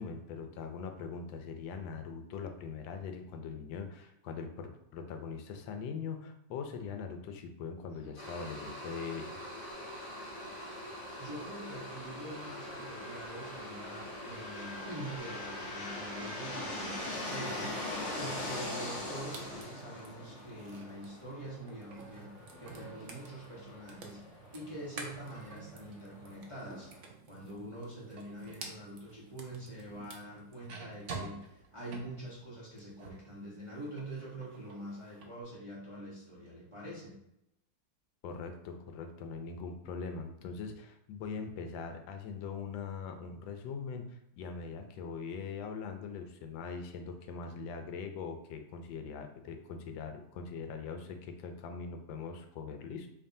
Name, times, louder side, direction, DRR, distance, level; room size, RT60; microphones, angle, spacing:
voice 1, 0.0-9.4 38.2-53.1, left 5 dB, 90° left, 6 dB, 1.3 m, -41 dB
sound 1, 8.2-19.6, equal, 20° left, 1.0 m, -45 dB
sound 2, 9.5-27.1, left 2 dB, 50° left, 1.1 m, -43 dB
voice 2, 11.2-26.9 27.3-37.1, right 1 dB, 25° right, -8 dB, 0.8 m, -45 dB
sound 3, 18.2-33.3 33.6-35.3, right 4 dB, 70° right, 0.7 m, -50 dB
4.4 x 3.0 x 2.7 m, 0.81 s
omnidirectional pair, 2.0 m